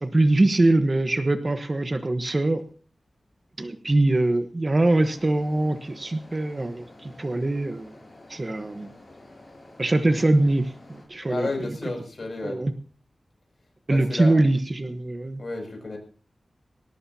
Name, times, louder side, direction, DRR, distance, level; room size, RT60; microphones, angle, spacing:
voice 1, 0.0-2.6 3.6-7.9 8.3-8.9 9.8-11.5 12.4-12.7 13.9-15.4, right 2 dB, 30° right, 9 dB, 1.1 m, -23 dB
sound 1, 4.8-11.0, left 2 dB, 30° left, 7.0 m, -49 dB
voice 2, 11.2-12.6 13.9-14.4 15.4-16.0, left 2 dB, 50° left, 3 dB, 6.6 m, -32 dB
20.0 x 18.5 x 2.8 m, 0.39 s
wide cardioid pair, 110°, 0 cm